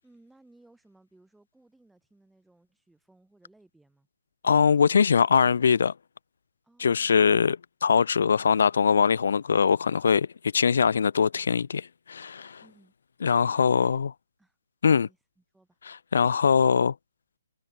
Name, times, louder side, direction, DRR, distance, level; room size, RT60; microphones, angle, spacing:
voice 1, 0.0-4.1 6.6-7.1 12.6-12.9 13.5-14.0 14.4-14.6 14.9-15.8, right 2 dB, 5° right, 7.8 m, -60 dB
voice 2, 4.4-5.9 6.8-7.6 7.8-10.3 10.5-12.6 13.2-14.1 14.8-15.1 15.9-16.9, left 6 dB, 70° left, 0.3 m, -22 dB
hypercardioid pair, 145°, 0 cm